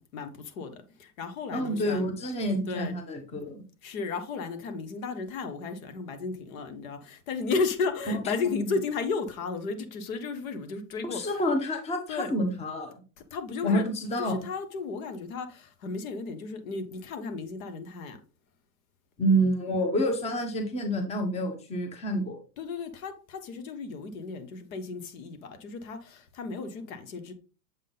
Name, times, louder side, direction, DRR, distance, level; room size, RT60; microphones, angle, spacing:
voice 1, 0.0-2.1 2.7-3.0 3.8-11.3 12.1-12.3 13.3-13.9 14.3-18.2 22.6-27.3, left 4 dB, 60° left, 1.3 m, -34 dB
voice 2, 1.5-3.6 8.1-8.2 8.5-8.8 11.0-12.9 13.6-14.4 19.2-22.4, equal, 15° left, 1.0 m, -28 dB
7.3 x 3.7 x 3.8 m
hypercardioid pair, 125°, 46 cm